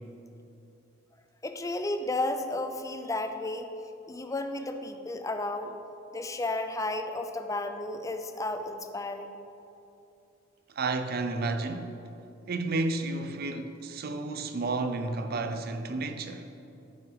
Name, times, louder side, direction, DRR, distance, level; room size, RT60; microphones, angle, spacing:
voice 1, 1.4-3.7 4.1-5.7 6.1-9.4, left 2 dB, 15° left, 0.5 m, -33 dB
voice 2, 10.7-11.9 12.5-16.5, right 3 dB, 50° right, 0.6 m, -31 dB
11.0 x 6.0 x 4.9 m
head